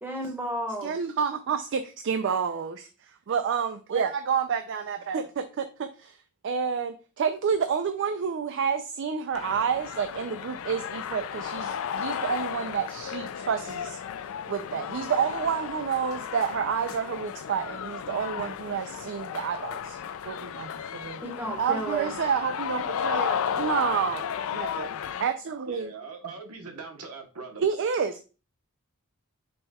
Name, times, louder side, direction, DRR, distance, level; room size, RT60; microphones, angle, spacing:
voice 1, 0.0-0.9 21.2-22.1, right 1 dB, 10° right, 1.0 m, -32 dB
voice 2, 0.8-2.9 3.3-6.2 6.4-14.0 14.5-20.0 20.3-21.2 21.6-24.2 24.5-24.9 25.2-25.9 27.6-28.2, right 6 dB, 55° right, 0.4 m, -29 dB
sound 1, 9.3-25.2, left 8 dB, 65° left, 0.3 m, -34 dB
voice 3, 25.7-27.7, right 4 dB, 85° right, 1.0 m, -41 dB
5.4 x 2.2 x 4.1 m
head